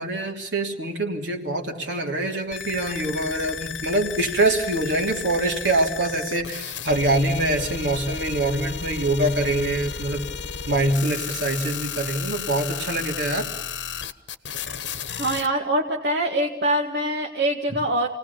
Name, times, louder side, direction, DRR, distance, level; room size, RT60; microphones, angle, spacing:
voice 1, 0.0-10.2 10.7-13.5, right 2 dB, 90° right, 1 dB, 3.2 m, -24 dB
sound 1, 2.5-15.5, left 7 dB, 80° left, 1.1 m, -33 dB
voice 2, 15.2-18.1, right 1 dB, 70° right, 0 dB, 1.8 m, -24 dB
28.5 x 19.0 x 7.0 m, 0.78 s
head